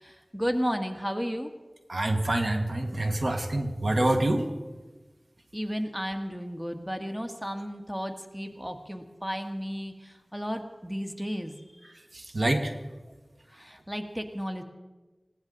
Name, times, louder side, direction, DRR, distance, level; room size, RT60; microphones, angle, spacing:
voice 1, 0.0-1.5 5.5-11.5 13.5-14.6, equal, 5° right, 5 dB, 1.6 m, -33 dB
voice 2, 1.9-4.5 12.3-12.7, right 1 dB, 70° right, 4 dB, 1.7 m, -26 dB
19.5 x 17.0 x 4.1 m, 1.2 s
wide cardioid pair, 45°, 0 cm